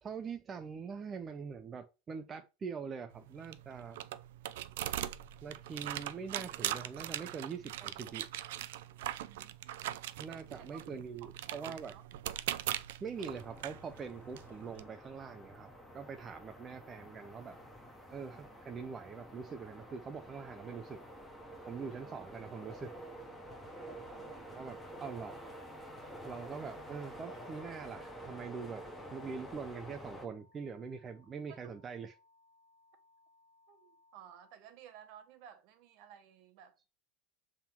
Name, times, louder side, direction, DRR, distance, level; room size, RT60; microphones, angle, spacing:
voice 1, 0.0-4.0 5.4-8.3 10.2-11.9 13.0-17.6 18.1-21.0 21.7-22.9 24.5-25.5 26.2-28.8 29.1-32.2, right 5 dB, 15° right, 0.4 m, -43 dB
sound 1, 3.1-14.8, right 13 dB, 85° right, 0.5 m, -41 dB
voice 2, 9.2-10.0 10.6-10.8 11.2-12.1 22.0-22.6 24.1-24.8 31.4-31.6 33.7-36.8, right 9 dB, 45° right, 1.0 m, -56 dB
sound 2, 13.2-30.3, equal, 5° left, 1.0 m, -49 dB
sound 3, 24.5-34.5, left 3 dB, 45° left, 1.4 m, -67 dB
7.3 x 3.7 x 4.4 m
supercardioid pair, 180°, 0 cm